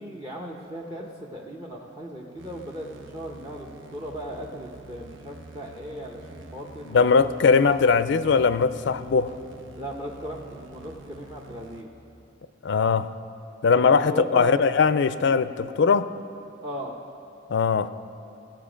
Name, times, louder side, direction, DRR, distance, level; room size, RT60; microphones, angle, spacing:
voice 1, 0.0-7.5 9.8-11.9 13.8-14.6 16.6-17.0, equal, 20° right, -1 dB, 0.8 m, -37 dB
sound 1, 2.4-11.8, right 2 dB, 85° right, 0.8 m, -47 dB
voice 2, 6.9-9.3 12.6-13.1 13.6-16.1 17.5-17.9, left 5 dB, 65° left, 14 dB, 0.4 m, -20 dB
17.5 x 7.7 x 5.1 m, 2.7 s
head